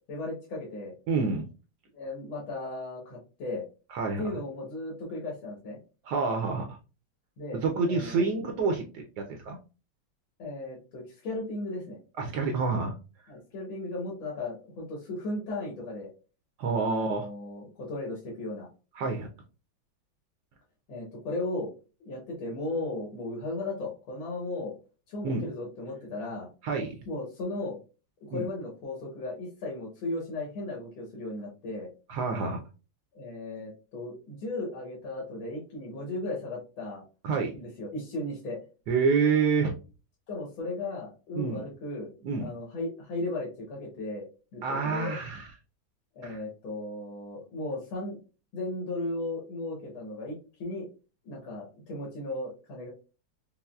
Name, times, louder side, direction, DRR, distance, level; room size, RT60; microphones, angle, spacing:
voice 1, 0.1-0.9 1.9-3.6 4.2-5.8 7.4-8.2 10.4-12.0 13.3-16.1 16.8-18.7 20.9-21.7 22.0-24.7 25.1-26.5 27.0-27.8 28.3-31.9 33.1-37.0 37.5-38.6 40.3-42.1 42.4-44.3 44.5-45.2 46.1-48.2 48.5-50.3 50.6-50.9 51.2-52.9, left 2 dB, 85° left, -2 dB, 1.8 m, -36 dB
voice 2, 1.1-1.5 3.9-4.2 6.0-6.8 7.6-9.6 12.2-12.9 16.6-17.3 18.9-19.3 25.2-25.4 26.6-27.0 28.3-28.5 32.1-32.6 37.2-37.5 38.9-39.7 41.3-41.6 42.2-42.5 44.6-45.5 46.2-46.4, right 4 dB, 75° right, 3 dB, 1.0 m, -28 dB
5.4 x 2.0 x 2.3 m, 0.33 s
omnidirectional pair, 2.1 m